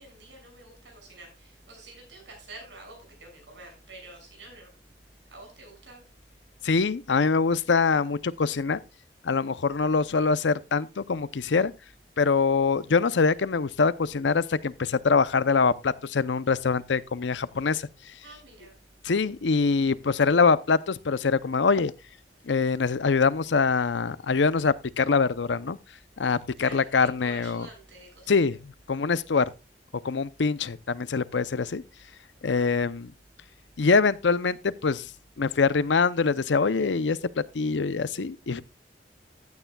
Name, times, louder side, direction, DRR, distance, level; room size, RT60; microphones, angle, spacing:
voice 1, 0.0-4.8 5.3-6.1 18.2-18.8 26.6-28.6 32.5-32.9, right 2 dB, 85° right, 6.2 m, -48 dB
voice 2, 6.6-8.8 9.2-11.7 12.2-17.9 19.0-21.9 22.5-25.8 26.2-27.7 28.3-29.5 30.0-31.8 32.4-33.1 33.8-35.1 35.4-38.6, left 4 dB, 80° left, 0.6 m, -24 dB
14.5 x 9.6 x 2.3 m
head